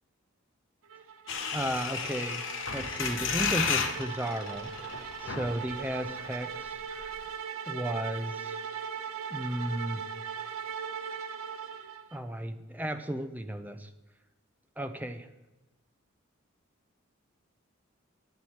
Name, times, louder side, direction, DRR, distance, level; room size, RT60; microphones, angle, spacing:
sound 1, 0.9-12.2, right 7 dB, 85° right, 0.6 m, -39 dB
sound 2, 1.3-6.3 6.6-6.7 6.9-7.2, left 6 dB, 65° left, 0.9 m, -33 dB
voice 1, 1.5-2.5 2.7-4.7 5.2-6.8 7.7-8.6 9.3-10.0 12.1-13.9 14.8-15.3, right 1 dB, 10° right, 8 dB, 0.5 m, -34 dB
8.9 x 7.9 x 4.2 m, 1.1 s
head